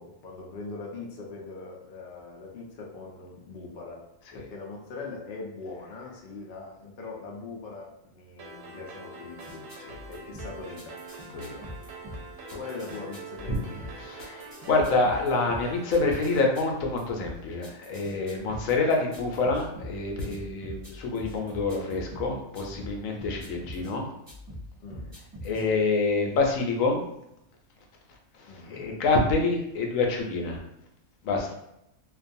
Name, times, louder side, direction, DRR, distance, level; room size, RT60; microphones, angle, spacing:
voice 1, 0.0-4.0 4.3-11.0 12.5-13.8 24.8-25.1 28.5-28.9, left 3 dB, 60° left, -2 dB, 0.5 m, -41 dB
sound 1, 8.4-16.4, right 3 dB, 75° right, 0.9 m, -44 dB
sound 2, 9.4-23.9 24.3-25.7, equal, 25° right, 0.4 m, -43 dB
voice 2, 14.0-24.1 25.4-27.0 28.7-30.6 31.2-31.5, left 3 dB, 80° left, 1 dB, 1.0 m, -27 dB
2.4 x 2.2 x 2.6 m, 0.81 s
omnidirectional pair, 1.4 m